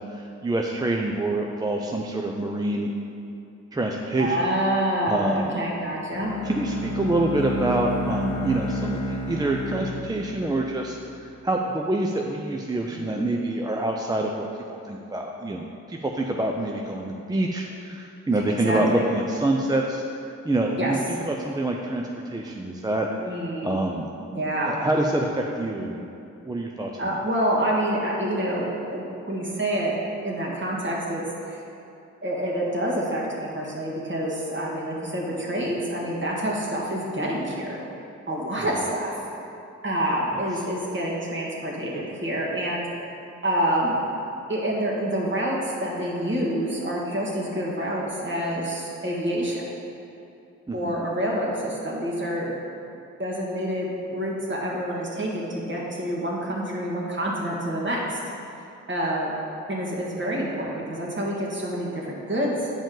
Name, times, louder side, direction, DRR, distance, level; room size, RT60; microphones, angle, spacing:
voice 1, 0.0-2.9 3.7-4.4 5.1-5.5 6.4-14.5 14.9-20.0 20.4-23.1 23.6-24.1 24.7-25.3 25.6-27.2 38.6-38.7 50.7-50.9, right 2 dB, 15° right, 0 dB, 0.5 m, -26 dB
voice 2, 4.2-6.3 12.9-13.3 18.3-19.1 20.8-21.0 23.2-23.8 24.3-24.8 27.0-29.9 30.2-31.6 32.2-37.8 38.3-39.2 39.8-42.9 43.4-44.0 44.5-49.7 50.7-52.5 53.2-58.2 58.9-59.4 59.7-62.7, right 1 dB, 40° right, -4 dB, 1.8 m, -27 dB
Bowed string instrument, 6.1-11.1, left 1 dB, 75° left, 0.8 m, -31 dB
8.7 x 5.1 x 3.8 m, 2.7 s
cardioid pair, 70°, 30 cm